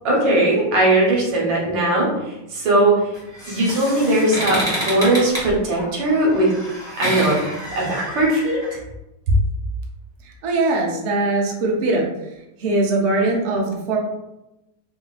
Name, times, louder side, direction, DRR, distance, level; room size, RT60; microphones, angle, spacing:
voice 1, 0.0-2.1 2.5-2.9 3.5-6.5 7.0-8.6, right 1 dB, 85° right, -3 dB, 1.7 m, -19 dB
sound 1, 3.1-8.7, equal, 5° left, 0.6 m, -28 dB
voice 2, 10.2-12.0 12.6-14.0, right 2 dB, 70° right, -1 dB, 0.6 m, -21 dB
3.6 x 2.5 x 2.3 m, 0.93 s
omnidirectional pair, 2.0 m